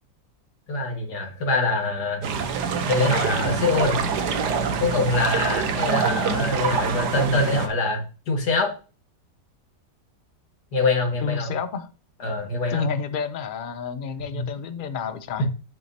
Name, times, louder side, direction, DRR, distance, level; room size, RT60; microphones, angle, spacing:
voice 1, 0.7-2.2 2.9-4.0 4.8-8.7 10.7-11.5 12.2-12.9 14.3-14.4 15.4-15.5, left 3 dB, 90° left, 2 dB, 2.4 m, -24 dB
sound 1, 2.2-7.7, right 6 dB, 85° right, 1.5 m, -25 dB
voice 2, 11.2-11.9 12.7-15.5, left 6 dB, 55° left, 11 dB, 0.5 m, -30 dB
8.2 x 7.2 x 2.8 m, 0.35 s
omnidirectional pair, 1.7 m